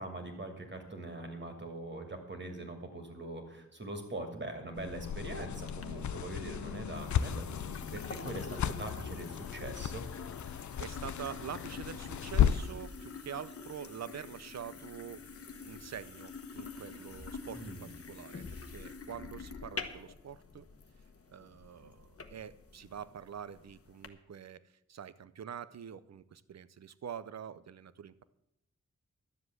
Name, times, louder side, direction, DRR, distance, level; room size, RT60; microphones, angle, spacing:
voice 1, 0.0-10.1 17.5-17.9, right 2 dB, 40° right, 5 dB, 2.6 m, -42 dB
sound 1, 4.8-12.8, left 9 dB, 80° left, 0.6 m, -34 dB
sound 2, 5.7-24.1, left 4 dB, 50° left, 1.2 m, -47 dB
voice 2, 10.5-15.3 15.7-20.7 21.3-24.6 24.9-28.2, right 8 dB, 65° right, 16 dB, 0.7 m, -45 dB
12.0 x 7.5 x 8.0 m, 0.83 s
wide cardioid pair, 90°, 29 cm